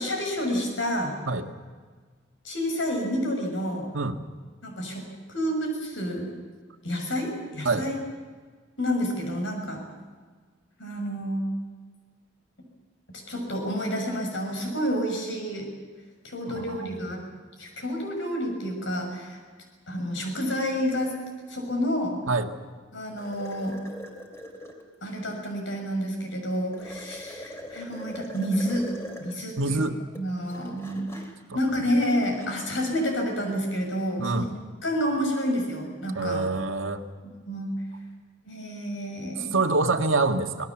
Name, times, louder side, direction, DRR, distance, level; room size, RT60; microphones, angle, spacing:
voice 1, 0.0-1.2 2.4-3.9 4.6-5.0 5.3-6.3 6.8-8.0 8.8-9.8 10.8-11.4 13.3-15.7 16.2-17.2 17.6-19.4 19.9-21.1 21.5-22.2 22.9-23.8 25.0-28.9 29.2-29.8 30.1-31.2 31.5-34.5 34.8-36.4 37.2-37.7 38.4-39.6, equal, 70° left, 3 dB, 6.3 m, -29 dB
voice 2, 16.5-17.0 22.3-22.5 29.6-30.0 34.2-34.5 36.2-37.0 39.5-40.7, right 3 dB, 85° right, 6 dB, 1.7 m, -25 dB
sound 1, 23.2-24.9 26.7-29.4 30.0-32.8, equal, 15° left, 3.1 m, -42 dB
26.5 x 19.5 x 7.2 m, 1.5 s
head